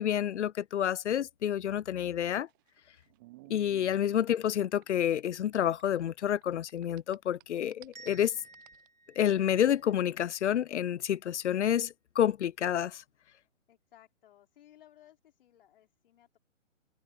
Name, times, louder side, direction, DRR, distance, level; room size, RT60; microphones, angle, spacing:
voice 1, 0.0-2.5 3.5-8.3 9.2-13.0, left 10 dB, 60° left, 0.5 m, -29 dB
sound 1, 2.1-6.4 6.7-8.9, right 22 dB, 15° right, 0.7 m, -57 dB
sound 2, 7.9-10.7, right 3 dB, 85° right, 2.6 m, -55 dB
voice 2, 13.7-16.4, left 12 dB, 45° left, 4.9 m, -60 dB
figure-of-eight pair, 135°, 39 cm